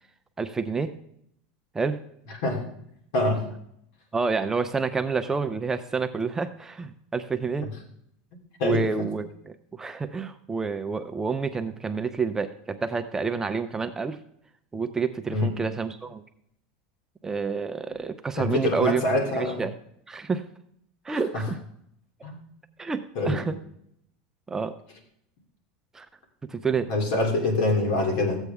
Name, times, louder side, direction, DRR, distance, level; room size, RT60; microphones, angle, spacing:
voice 1, 0.4-0.9 1.7-2.0 4.1-7.7 8.6-14.2 14.7-16.2 17.2-19.0 19.3-19.7 20.1-20.4 21.0-21.6 22.8-23.6 24.5-24.7 25.9-26.1 26.5-26.9, right 5 dB, 10° right, 8 dB, 0.5 m, -28 dB
voice 2, 8.6-9.1 15.3-15.5 18.4-19.6 21.3-21.4 22.2-22.4 23.1-23.4 26.9-28.4, left 2 dB, 65° left, 3 dB, 3.0 m, -25 dB
14.5 x 8.1 x 3.5 m, 0.72 s
supercardioid pair, 155°, 4 cm